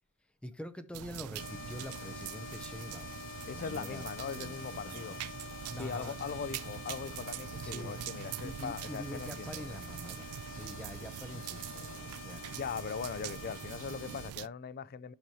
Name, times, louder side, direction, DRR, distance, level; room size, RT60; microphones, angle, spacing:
voice 1, 0.4-3.1 3.5-4.0 4.4-5.2 5.7-6.1 7.4-12.6, equal, 5° left, 0.7 m, -46 dB
sound 1, 0.9-14.5, right 10 dB, 80° right, 0.3 m, -44 dB
sound 2, 1.4-14.3, left 5 dB, 65° left, 1.3 m, -47 dB
voice 2, 3.4-5.2 5.8-9.8 12.5-15.1, left 6 dB, 45° left, 0.4 m, -40 dB
10.5 x 6.1 x 2.8 m
head